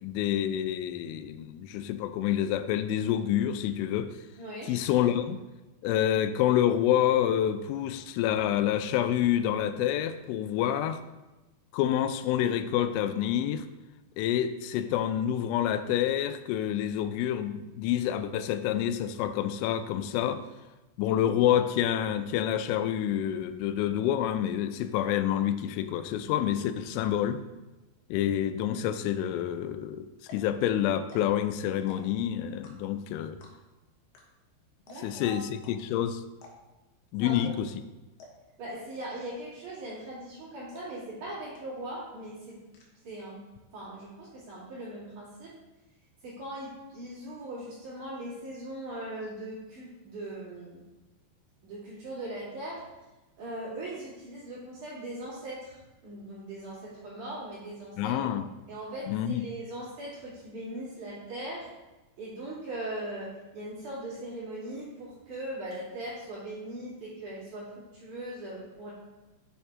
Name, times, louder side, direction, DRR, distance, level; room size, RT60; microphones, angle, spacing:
voice 1, 0.0-4.1 4.7-5.4 5.8-11.0 11.7-13.6 14.2-20.4 21.0-27.4 28.1-30.1 30.3-33.4 35.0-36.2 37.1-37.7 58.0-58.5 59.1-59.4, left 11 dB, 90° left, 10 dB, 3.0 m, -28 dB
voice 2, 4.4-4.7 34.9-35.4 37.2-37.6 38.6-42.6 43.0-43.4 43.7-45.5 46.2-50.8 51.6-52.8 53.4-58.2 58.7-61.7 62.2-68.9, right 1 dB, 45° right, -9 dB, 3.7 m, -40 dB
sound 1, 29.7-29.8 30.2-30.5 31.0-31.4 31.8-32.2 32.6-33.0 33.4-33.8 34.1-34.2 34.5-34.6 34.9-35.2 35.6-35.7 36.3-36.8 37.3-37.8 38.2-38.5 39.0-39.4 39.9-40.2 40.7-40.8 41.2-41.3 41.5-42.0 42.2-42.9, left 3 dB, 70° left, 2.7 m, -51 dB
7.4 x 7.1 x 3.6 m, 1.1 s
omnidirectional pair, 5.4 m